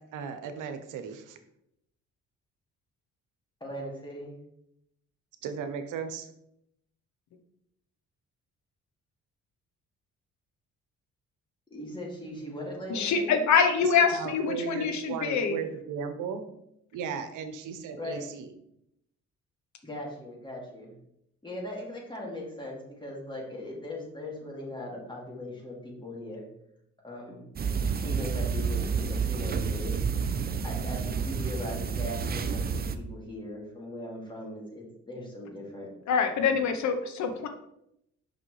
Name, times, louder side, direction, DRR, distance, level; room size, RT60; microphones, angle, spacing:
voice 1, 0.1-1.4 5.4-6.3 13.8-16.4 16.9-18.5, right 6 dB, 85° right, 8 dB, 0.8 m, -36 dB
voice 2, 3.6-4.4 11.7-13.4 18.0-18.2 19.8-21.0 21.4-26.5 27.0-27.4 28.0-29.9 30.6-35.9, left 1 dB, 15° left, -3 dB, 2.4 m, -39 dB
voice 3, 12.9-15.6 36.1-37.5, left 6 dB, 70° left, 7 dB, 0.9 m, -25 dB
sound 1, 27.6-33.0, right 5 dB, 30° right, 0.5 m, -29 dB
6.3 x 5.8 x 3.2 m, 0.78 s
cardioid pair, 90°, 30 cm